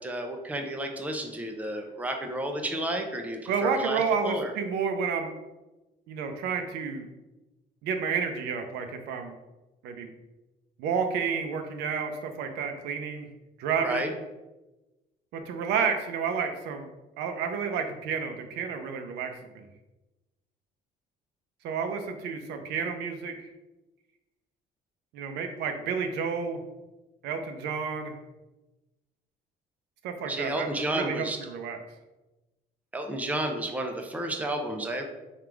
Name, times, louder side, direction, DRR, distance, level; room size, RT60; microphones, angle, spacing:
voice 1, 0.0-4.5 13.8-14.1 30.2-31.4 32.9-35.0, right 1 dB, 10° right, 3 dB, 0.5 m, -31 dB
voice 2, 3.5-5.3 6.1-7.1 7.8-9.3 9.8-10.1 10.8-13.3 13.6-14.1 15.3-16.9 17.2-19.7 21.6-23.5 25.1-26.6 27.2-28.2 30.0-31.8, right 6 dB, 85° right, 6 dB, 0.5 m, -30 dB
3.5 x 2.4 x 4.5 m, 1.1 s
cardioid pair, 110°, 17 cm